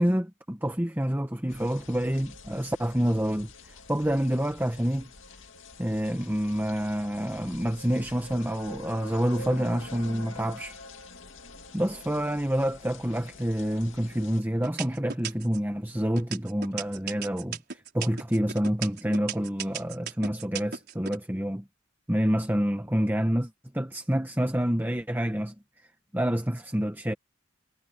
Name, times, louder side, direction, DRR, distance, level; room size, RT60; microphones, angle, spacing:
voice 1, 0.0-5.1 5.8-10.8 11.7-21.6 22.1-25.5 26.1-27.1, equal, 10° right, 1.3 m, -28 dB
sound 1, 1.5-14.4, left 3 dB, 70° left, 2.3 m, -46 dB
sound 2, 13.7-14.2 14.6-15.7 16.2-21.2, right 7 dB, 50° right, 5.3 m, -36 dB
head